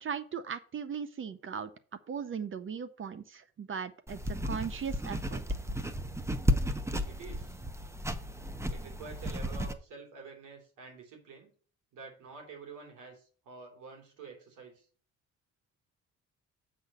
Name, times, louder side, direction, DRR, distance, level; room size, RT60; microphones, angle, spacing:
voice 1, 0.0-1.7 2.1-5.4, right 6 dB, 45° right, 12 dB, 0.7 m, -38 dB
sound 1, 4.1-9.7, equal, 10° right, 0.8 m, -33 dB
voice 2, 7.0-7.6 8.7-11.5 11.9-14.9, right 4 dB, 85° right, 1 dB, 3.0 m, -48 dB
7.7 x 4.1 x 6.7 m, 0.42 s
cardioid pair, 90°, 30 cm